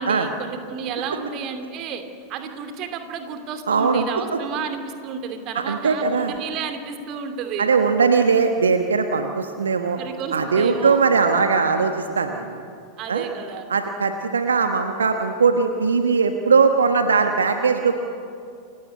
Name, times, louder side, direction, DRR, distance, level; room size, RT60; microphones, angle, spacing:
voice 1, 0.0-2.0 2.3-7.7 9.9-11.0 13.0-13.7, right 6 dB, 40° right, 7 dB, 2.6 m, -31 dB
voice 2, 3.7-4.1 4.3-4.4 5.5-6.3 7.6-10.0 10.3-12.6 13.1-13.3 13.7-18.0, right 5 dB, 70° right, 6 dB, 1.2 m, -20 dB
28.5 x 15.5 x 8.4 m, 2.4 s
figure-of-eight pair, 90°, 0 cm